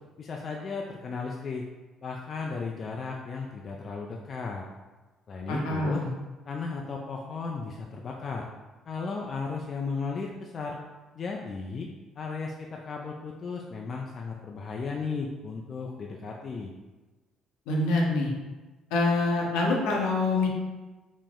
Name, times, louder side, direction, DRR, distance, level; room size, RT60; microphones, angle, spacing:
voice 1, 0.2-1.7 2.0-4.6 5.3-6.0 6.5-8.5 8.9-10.8 11.2-11.9 12.2-16.7, left 4 dB, 45° left, 0 dB, 0.3 m, -35 dB
voice 2, 5.5-6.1 17.7-18.3 18.9-20.5, left 2 dB, 70° left, -2 dB, 0.7 m, -25 dB
4.1 x 2.0 x 3.6 m, 1.2 s
hypercardioid pair, 50°, 0 cm